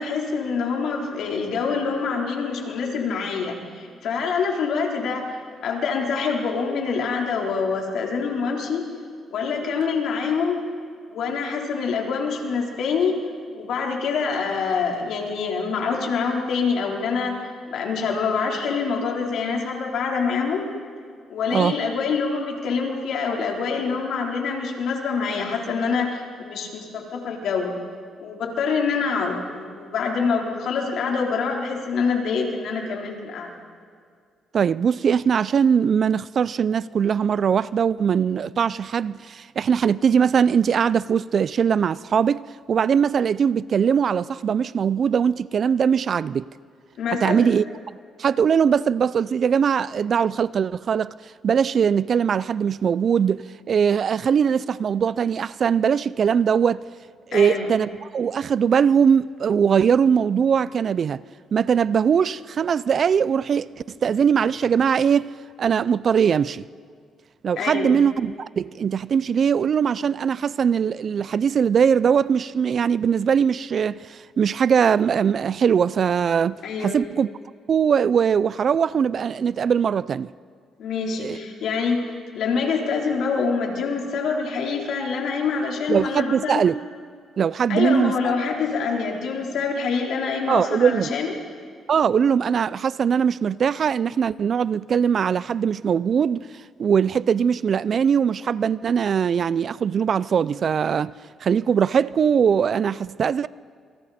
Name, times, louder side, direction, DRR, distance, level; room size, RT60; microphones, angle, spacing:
voice 1, 0.0-8.8 9.3-10.6 11.1-13.2 13.5-17.4 17.7-20.6 21.3-27.7 28.2-33.5 47.0-47.5 57.3-57.7 67.6-67.9 76.6-77.0 80.8-82.0 82.3-86.6 87.7-91.3, left 5 dB, 75° left, 3.9 m, -25 dB
voice 2, 34.5-46.4 47.2-47.6 48.2-51.1 51.4-56.8 57.3-61.2 61.5-65.3 65.6-66.6 67.4-77.3 77.7-80.3 81.2-81.4 85.9-86.8 87.4-88.3 90.5-91.1 91.9-96.5 96.8-101.1 101.4-103.5, right 7 dB, 50° right, 0.4 m, -21 dB
28.0 x 24.0 x 4.3 m
cardioid pair, 90°, 0 cm